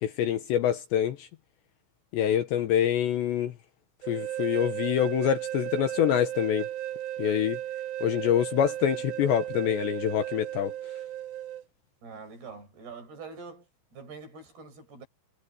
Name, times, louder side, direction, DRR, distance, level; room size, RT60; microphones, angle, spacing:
voice 1, 0.0-1.3 2.1-3.5 4.1-6.6 7.2-7.6 8.0-10.7, left 10 dB, 70° left, 3.1 m, -26 dB
sound 1, 4.0-11.6, right 12 dB, 65° right, 2.3 m, -35 dB
voice 2, 12.0-15.1, right 4 dB, 50° right, 9.7 m, -45 dB
omnidirectional pair, 5.9 m